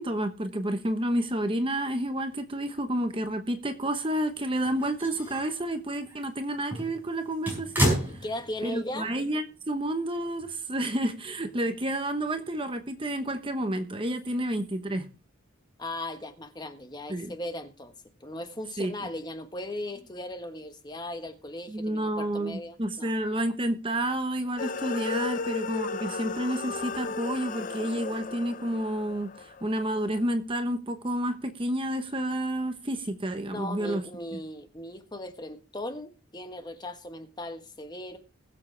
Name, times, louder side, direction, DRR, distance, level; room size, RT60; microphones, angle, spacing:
voice 1, 0.0-8.2 8.6-15.1 17.1-17.3 18.8-18.9 21.7-34.0, right 1 dB, 25° right, 1.0 m, -30 dB
sound 1, 4.4-5.6 6.0-6.2 6.6-8.8 9.1-9.2 10.4-10.5, equal, 10° right, 5.4 m, -31 dB
voice 2, 8.2-9.1 15.8-17.9 18.2-23.1 33.5-38.2, left 1 dB, 20° left, 1.3 m, -38 dB
sound 2, 24.6-30.0, left 4 dB, 40° left, 0.5 m, -35 dB
20.5 x 7.4 x 3.3 m
head